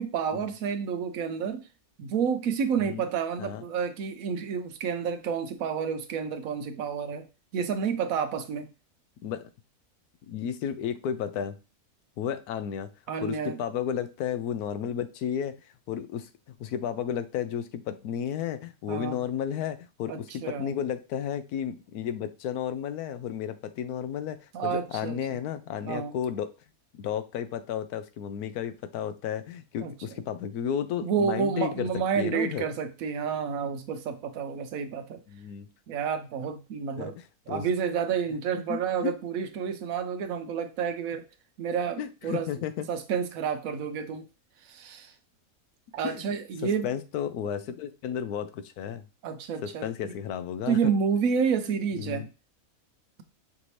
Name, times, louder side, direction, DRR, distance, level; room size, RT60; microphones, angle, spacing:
voice 1, 0.0-1.6 2.0-7.2 7.5-8.7 13.1-13.6 18.9-19.2 20.1-20.8 24.5-25.4 25.9-26.2 29.8-30.2 31.0-35.2 35.9-37.2 37.5-41.2 41.6-42.5 42.9-44.3 44.6-45.1 45.9-46.9 49.2-50.1 50.7-52.3, right 6 dB, 70° right, 8 dB, 1.0 m, -30 dB
voice 2, 10.3-11.6 12.2-12.9 13.2-15.5 15.9-16.3 16.6-26.5 26.9-31.9 32.2-32.7 35.3-35.7 37.0-37.1 37.5-37.6 38.5-39.1 42.0-42.9 46.0-46.2 46.6-49.0 49.6-50.8 52.0-52.3, left 8 dB, 85° left, 10 dB, 1.1 m, -33 dB
5.9 x 2.8 x 3.1 m, 0.30 s
omnidirectional pair, 1.6 m